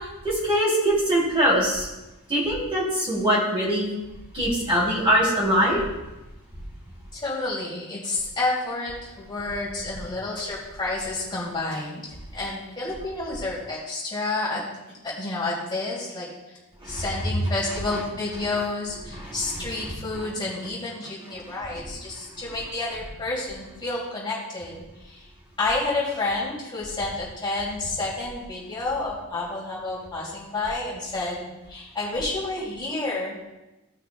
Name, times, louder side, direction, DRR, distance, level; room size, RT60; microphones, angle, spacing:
voice 1, 0.2-1.9 2.3-3.9 4.3-5.8 16.8-17.0 19.1-19.9, equal, 25° right, -7 dB, 3.2 m, -23 dB
voice 2, 7.1-12.1 12.3-14.6 15.0-16.6 16.8-25.2 25.6-33.5, left 2 dB, 20° left, -7 dB, 2.7 m, -30 dB
16.5 x 5.8 x 2.4 m, 1.0 s
head